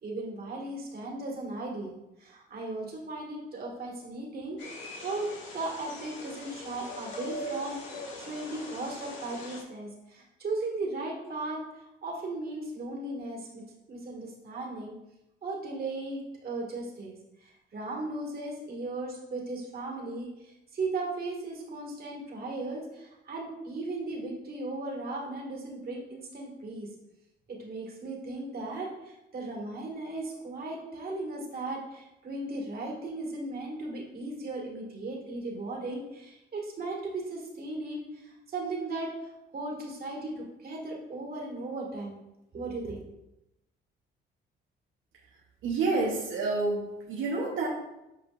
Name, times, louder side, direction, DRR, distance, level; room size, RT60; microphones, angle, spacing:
voice 1, 0.0-1.9 2.2-5.3 5.5-7.8 8.2-11.6 12.0-13.6 13.9-14.9 15.4-26.9 27.5-42.2 42.5-43.0, right 2 dB, 50° right, -2 dB, 1.9 m, -37 dB
sound 1, 4.6-9.6, left 1 dB, 75° left, 1.8 m, -41 dB
voice 2, 45.6-47.7, right 3 dB, 85° right, -3 dB, 1.0 m, -29 dB
7.9 x 5.0 x 2.5 m, 0.90 s
cardioid pair, 90°, 20 cm